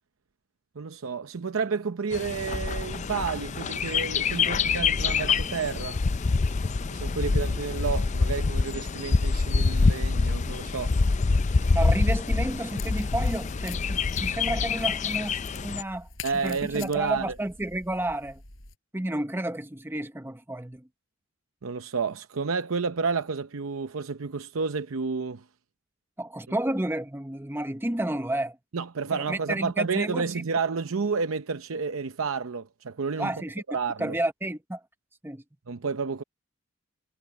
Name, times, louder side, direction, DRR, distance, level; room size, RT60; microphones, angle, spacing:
voice 1, 0.8-6.0 6.9-11.0 16.2-17.4 21.6-25.4 28.7-34.1 35.7-36.2, right 5 dB, 85° right, 0.7 m, -30 dB
Bird, 2.1-15.8, left 4 dB, 35° left, 0.4 m, -26 dB
voice 2, 11.7-16.1 16.4-18.4 18.9-20.8 26.2-28.6 29.1-30.2 33.2-33.6 34.0-34.8 35.2-35.4, right 1 dB, 10° right, 0.8 m, -31 dB
sound 1, 12.6-18.7, left 5 dB, 80° left, 6.6 m, -45 dB
head